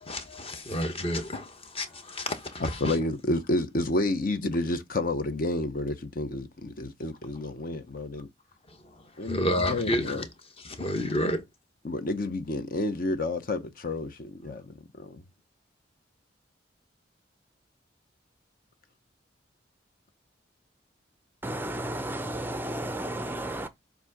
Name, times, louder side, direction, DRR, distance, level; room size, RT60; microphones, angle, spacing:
voice 1, 0.0-2.9 9.2-10.3 10.6-11.4, left 1 dB, 30° left, 1.1 m, -30 dB
voice 2, 2.6-8.3 9.2-10.2 11.8-15.2, left 2 dB, 50° left, 0.7 m, -30 dB
voice 3, 21.4-23.7, right 1 dB, 10° right, 0.5 m, -33 dB
7.3 x 2.6 x 5.8 m
head